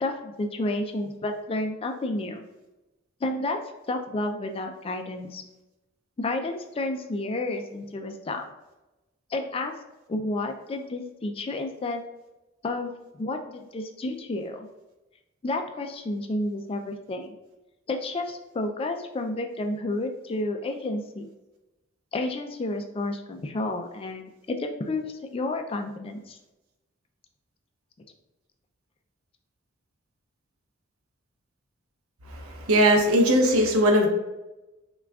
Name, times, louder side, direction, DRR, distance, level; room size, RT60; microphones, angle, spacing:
voice 1, 0.0-2.4 3.2-3.6 3.9-5.4 6.2-8.5 9.3-9.7 10.1-12.0 12.6-14.6 15.4-17.4 17.9-21.3 22.1-26.4, left 2 dB, 25° left, 5 dB, 0.3 m, -31 dB
voice 2, 32.3-34.1, equal, 85° right, 2 dB, 0.7 m, -20 dB
5.8 x 2.3 x 2.3 m, 1.0 s
head